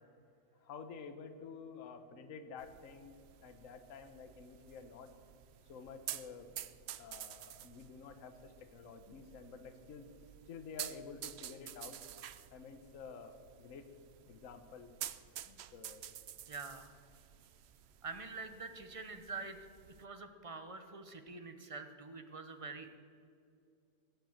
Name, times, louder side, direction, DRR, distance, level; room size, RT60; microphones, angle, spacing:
voice 1, 0.6-3.1 3.4-5.1 5.7-6.5 7.0-10.1 10.5-12.0 12.5-13.9 14.3-14.9 15.4-16.0, left 5 dB, 55° left, 8 dB, 1.3 m, -50 dB
sound 1, 2.6-20.0, right 11 dB, 90° right, 0.5 m, -50 dB
voice 2, 16.5-16.9 18.0-19.6 20.0-23.0, right 4 dB, 30° right, 8 dB, 0.7 m, -46 dB
21.0 x 7.9 x 7.3 m, 2.6 s
omnidirectional pair, 1.8 m